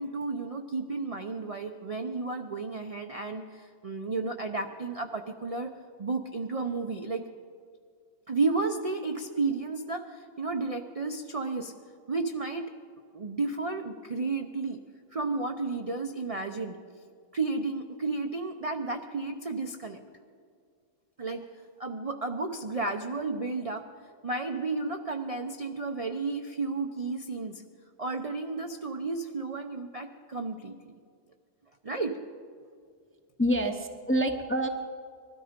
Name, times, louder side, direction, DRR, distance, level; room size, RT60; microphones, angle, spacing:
voice 1, 0.0-5.7 6.0-7.2 8.3-11.7 12.1-12.7 13.1-14.8 15.1-16.8 17.3-20.0 21.2-21.5 21.8-23.8 24.2-27.6 28.0-30.9 31.8-32.2, right 3 dB, 45° right, 4 dB, 0.4 m, -32 dB
voice 2, 33.4-34.7, equal, 15° left, 5 dB, 0.5 m, -27 dB
20.0 x 13.0 x 5.1 m, 2.2 s
omnidirectional pair, 1.6 m